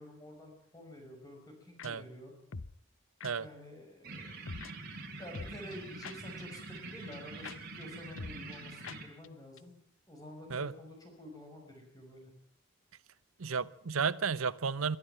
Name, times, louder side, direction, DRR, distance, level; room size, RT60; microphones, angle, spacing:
voice 1, 0.0-2.3 3.4-4.3 5.2-9.8 10.1-12.3, left 1 dB, 20° left, 5.4 m, -49 dB
sound 1, 1.8-1.9 2.5-2.7 3.2-3.3 4.5-4.7 5.3-6.4 6.8-6.9 7.1-7.2 7.4-7.6 7.8-7.9 8.2-8.6 8.8-9.0 9.2-9.3 9.6-9.7, left 4 dB, 65° left, 0.8 m, -43 dB
sound 2, 4.0-9.0, right 3 dB, 45° right, 6.0 m, -45 dB
voice 2, 13.4-15.0, right 5 dB, 85° right, 0.8 m, -32 dB
23.0 x 13.0 x 9.1 m
head